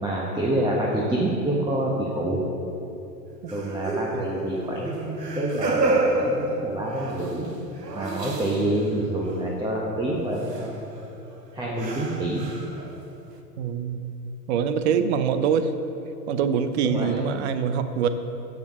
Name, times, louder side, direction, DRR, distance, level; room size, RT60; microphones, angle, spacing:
voice 1, 0.0-2.4 3.5-7.5 7.9-10.8 11.5-12.4 16.8-17.1, right 1 dB, 10° right, -3 dB, 1.2 m, -27 dB
sound 1, 3.5-8.9 9.2-9.5 10.5-10.7 11.3-11.4 11.8-13.1, right 2 dB, 85° right, 1.1 m, -29 dB
voice 2, 13.6-14.0 14.5-15.7 16.3-18.1, right 7 dB, 45° right, 10 dB, 0.8 m, -24 dB
10.5 x 7.6 x 6.4 m, 2.8 s
figure-of-eight pair, 100°, 47 cm